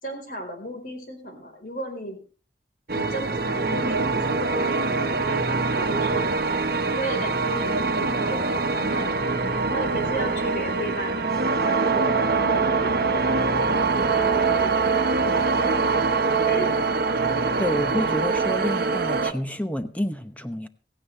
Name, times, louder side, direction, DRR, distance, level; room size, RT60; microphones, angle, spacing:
voice 1, 0.0-2.2 2.9-6.3 6.9-9.1 9.7-11.3 11.6-13.3 14.1-14.8 15.2-15.9 16.5-16.7, equal, 50° left, 4.3 m, -34 dB
sound 1, 2.9-19.3, right 4 dB, 55° right, 1.3 m, -23 dB
voice 2, 17.6-20.7, equal, 10° left, 0.9 m, -29 dB
16.5 x 15.5 x 3.3 m
head